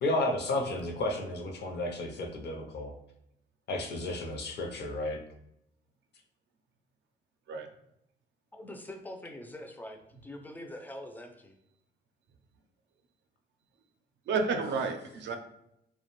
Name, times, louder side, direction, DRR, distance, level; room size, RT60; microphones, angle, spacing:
voice 1, 0.0-2.9 3.7-5.2, left 2 dB, 60° left, 3 dB, 0.5 m, -32 dB
voice 2, 8.5-11.5, left 1 dB, 10° left, 4 dB, 0.4 m, -44 dB
voice 3, 14.3-15.4, right 4 dB, 65° right, 5 dB, 0.4 m, -31 dB
2.4 x 2.1 x 2.9 m, 0.79 s
cardioid pair, 90°, 20 cm